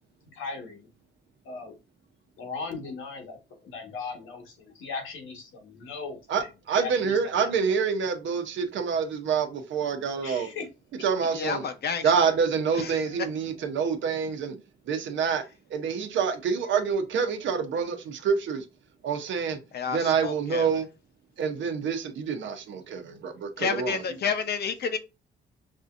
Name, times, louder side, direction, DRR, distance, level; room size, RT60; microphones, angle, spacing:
voice 1, 0.3-0.9 1.4-1.7 2.4-3.4 3.6-7.5 10.2-10.6, left 4 dB, 85° left, 1.6 m, -38 dB
voice 2, 6.3-10.5 11.0-11.6 12.0-14.6 14.9-15.4 15.7-18.6 19.0-19.6 19.9-20.9 21.4-24.0, right 6 dB, 70° right, 0.9 m, -27 dB
voice 3, 11.3-12.1 12.7-13.0 19.7-20.7 23.6-25.0, left 6 dB, 55° left, 0.8 m, -30 dB
5.3 x 2.7 x 2.5 m
cardioid pair, 90°, 20 cm